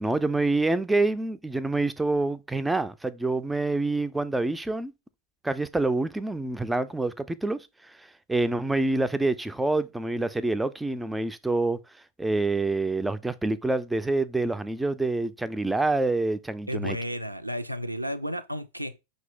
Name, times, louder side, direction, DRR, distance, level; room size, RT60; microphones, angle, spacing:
voice 1, 0.0-4.9 5.4-7.7 8.3-11.8 12.2-17.0, right 2 dB, 5° right, 0.3 m, -26 dB
voice 2, 16.7-19.0, equal, 85° right, 0.5 m, -32 dB
5.9 x 2.6 x 3.4 m
figure-of-eight pair, 90°, 0 cm